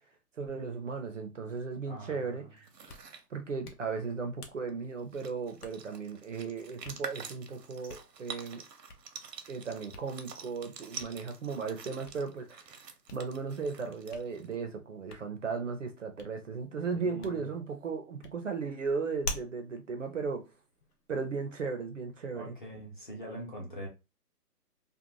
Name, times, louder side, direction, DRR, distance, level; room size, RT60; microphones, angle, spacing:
voice 1, 0.4-2.7 3.3-8.6 9.5-12.8 13.1-20.5 21.1-22.6, right 5 dB, 55° right, 0.5 m, -36 dB
voice 2, 1.8-2.5 16.9-17.5 22.3-23.9, right 1 dB, 30° left, 0.6 m, -43 dB
Hands, 2.6-21.2, left 3 dB, 70° left, 0.8 m, -49 dB
sound 1, 2.6-3.2 4.7-4.8 5.0-14.5, right 6 dB, 85° right, 0.8 m, -47 dB
2.6 x 2.1 x 2.8 m
hypercardioid pair, 170°, 48 cm